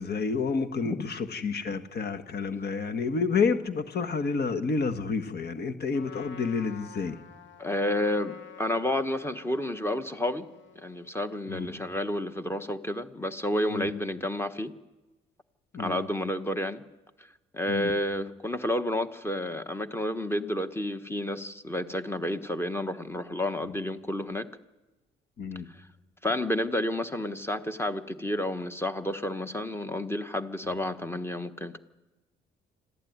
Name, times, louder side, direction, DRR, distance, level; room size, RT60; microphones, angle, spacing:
voice 1, 0.0-7.2 11.5-11.7 13.7-13.9 15.7-16.0 17.7-17.9 25.4-25.7, left 5 dB, 55° left, 9 dB, 1.6 m, -29 dB
Trumpet, 5.9-11.2, left 6 dB, 70° left, 2.3 m, -49 dB
voice 2, 7.6-10.5 10.8-14.7 15.8-16.8 17.5-24.5 26.2-31.8, left 1 dB, 10° left, 9 dB, 1.3 m, -30 dB
26.0 x 14.5 x 9.5 m, 1.1 s
cardioid pair, 90°, 20 cm